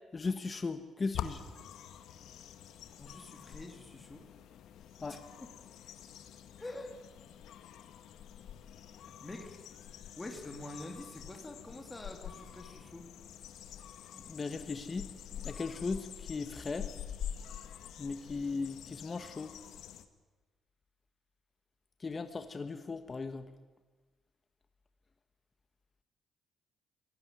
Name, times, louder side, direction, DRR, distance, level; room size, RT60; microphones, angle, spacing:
voice 1, 0.1-1.4 5.0-5.2 14.1-15.1 15.4-16.9 18.0-19.5 22.0-23.4, left 4 dB, 30° left, 8 dB, 1.4 m, -37 dB
sound 1, 1.1-20.1, left 9 dB, 80° left, 1.6 m, -46 dB
voice 2, 2.9-4.2 5.0-5.5 6.6-7.0 9.0-9.6 10.2-13.1, left 1 dB, 15° left, 3 dB, 3.1 m, -46 dB
25.0 x 18.0 x 9.4 m, 1.3 s
cardioid pair, 90°, 0 cm